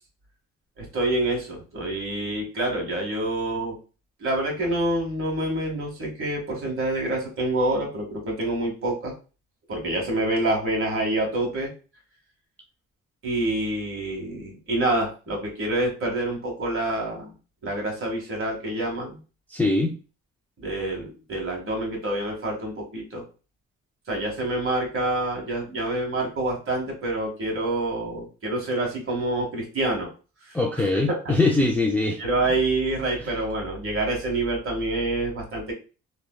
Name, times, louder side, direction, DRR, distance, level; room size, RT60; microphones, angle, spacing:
voice 1, 0.8-3.8 4.2-9.1 9.7-11.7 13.2-17.3 17.6-19.2 20.6-23.2 24.1-30.1 30.5-30.6 30.9-31.4 32.2-35.7, right 1 dB, 45° right, 0 dB, 1.5 m, -27 dB
voice 2, 19.5-20.0 25.7-25.8 30.5-32.2 33.2-33.3, left 2 dB, 5° left, -1 dB, 0.4 m, -23 dB
3.1 x 2.3 x 2.3 m, 0.33 s
cardioid pair, 90°, 30 cm